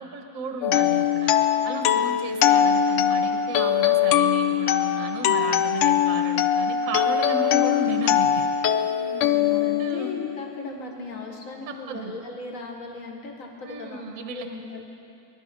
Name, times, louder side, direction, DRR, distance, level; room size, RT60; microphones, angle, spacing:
voice 1, 0.0-1.3 1.6-8.5 9.8-10.2 11.7-12.2 13.6-14.5, right 5 dB, 55° right, 5 dB, 1.3 m, -34 dB
sound 1, 0.6-10.5, left 9 dB, 85° left, 0.6 m, -22 dB
voice 2, 1.6-2.1 8.9-14.9, left 3 dB, 50° left, 1 dB, 1.9 m, -38 dB
21.5 x 11.5 x 5.1 m, 2.6 s
omnidirectional pair, 1.9 m